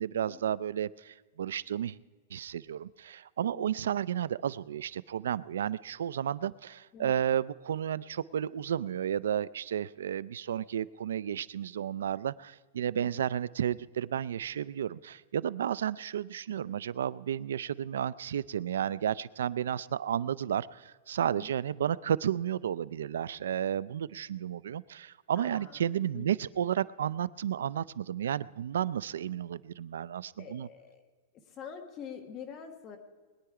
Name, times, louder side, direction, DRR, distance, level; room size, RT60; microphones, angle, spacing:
voice 1, 0.0-2.0 2.3-30.7, right 9 dB, 90° right, 20 dB, 0.4 m, -32 dB
voice 2, 3.5-3.9 6.9-7.2 12.9-13.2 21.3-21.5 25.4-25.9 26.1-26.3 30.4-31.0 31.5-33.0, left 7 dB, 20° left, 5 dB, 1.4 m, -46 dB
21.0 x 10.0 x 4.8 m, 1.4 s
supercardioid pair, 175°, 0 cm